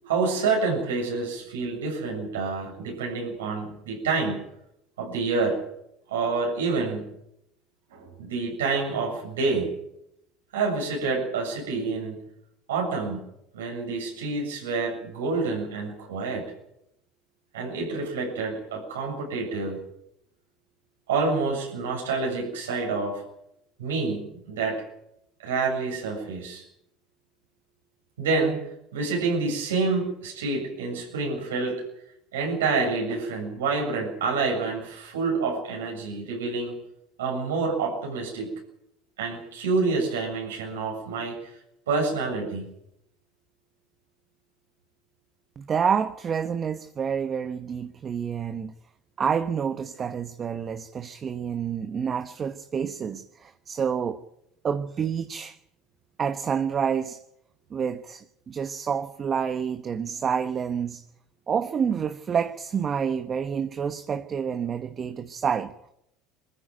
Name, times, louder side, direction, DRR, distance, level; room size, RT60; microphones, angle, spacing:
voice 1, 0.0-4.4 5.0-5.6 6.1-7.1 7.9-9.7 10.5-12.2 12.7-13.2 13.5-16.5 17.5-19.8 21.1-23.2 23.8-24.8 25.4-26.6 28.2-28.6 28.9-31.8 32.3-36.7 37.2-38.5 39.2-41.4 41.9-42.6, right 4 dB, 90° right, 7.3 m, -27 dB
voice 2, 45.6-48.7 49.2-54.2 54.6-55.6 56.2-57.2 57.7-61.0 61.5-65.9, right 7 dB, 35° right, 1.1 m, -28 dB
21.5 x 14.5 x 9.2 m
hypercardioid pair, 85°, 0 cm